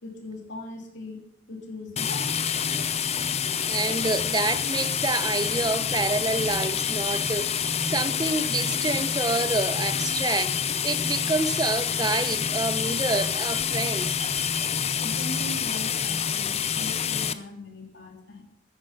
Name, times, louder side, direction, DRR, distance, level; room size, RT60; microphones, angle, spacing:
voice 1, 0.0-2.3 14.9-18.4, left 2 dB, 65° left, 2.9 m, -39 dB
sound 1, 2.0-17.3, left 7 dB, 35° left, 0.6 m, -27 dB
voice 2, 3.6-14.1, right 3 dB, 20° right, 0.6 m, -28 dB
14.0 x 9.9 x 5.8 m
head